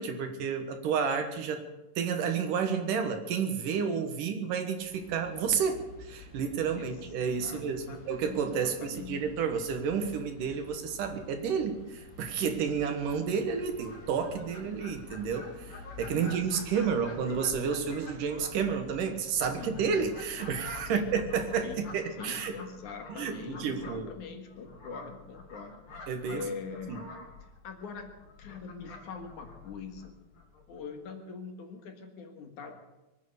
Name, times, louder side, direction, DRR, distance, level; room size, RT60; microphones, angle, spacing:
voice 1, 0.0-1.6 2.0-22.5 23.1-24.1 26.1-26.4 26.9-27.0, right 6 dB, 70° right, 7 dB, 2.9 m, -31 dB
sound 1, 4.8-21.8, left 4 dB, 25° left, 3.0 m, -50 dB
voice 2, 7.4-9.2 16.1-17.1 19.6-19.8 20.8-21.1 21.6-21.9 22.2-26.0 26.3-27.1 27.6-28.1 28.4-30.2 30.7-32.8, left 5 dB, 65° left, 4 dB, 2.9 m, -43 dB
Fowl, 13.5-30.8, left 3 dB, 85° left, 4.8 m, -49 dB
23.5 x 9.3 x 6.7 m, 1.0 s
omnidirectional pair, 4.0 m